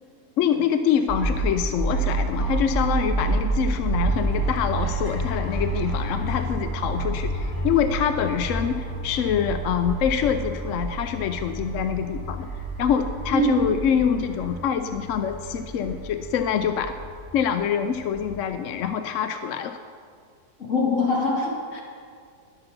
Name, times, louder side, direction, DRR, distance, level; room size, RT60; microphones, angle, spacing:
voice 1, 0.4-12.5 12.8-16.9 17.3-19.8, left 8 dB, 70° left, 8 dB, 0.8 m, -25 dB
sound 1, 1.1-18.6, right 2 dB, 30° left, 3.4 m, -29 dB
voice 2, 13.3-13.7 20.6-21.8, left 1 dB, 50° left, -3 dB, 2.9 m, -23 dB
20.0 x 7.0 x 5.2 m, 2.1 s
omnidirectional pair, 1.7 m